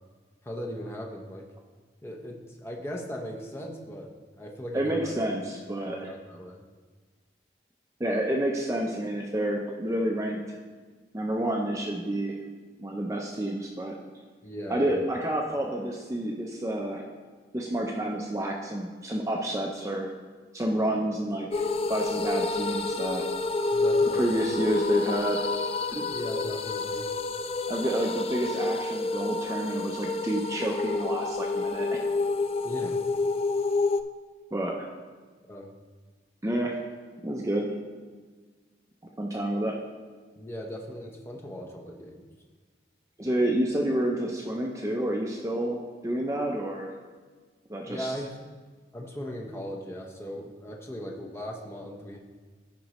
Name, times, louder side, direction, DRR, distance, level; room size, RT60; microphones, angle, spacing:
voice 1, 0.4-1.4 2.0-5.1 5.8-6.6 14.4-15.1 23.7-24.4 26.1-27.1 32.6-33.0 35.4-35.7 40.4-42.2 47.8-48.3 48.9-52.2, equal, 15° left, -1 dB, 0.8 m, -38 dB
voice 2, 4.7-6.1 8.0-10.4 11.1-12.4 12.8-13.9 14.7-17.0 17.5-20.1 20.5-23.2 24.1-25.5 25.9-26.1 27.7-32.0 34.5-34.9 36.4-36.8 37.2-37.7 39.2-39.7 43.2-45.8 46.0-46.9 47.7-48.1, right 1 dB, 15° right, -1 dB, 0.6 m, -29 dB
sound 1, 21.5-34.0, left 3 dB, 35° left, 0.3 m, -28 dB
14.5 x 5.3 x 3.0 m, 1.5 s
head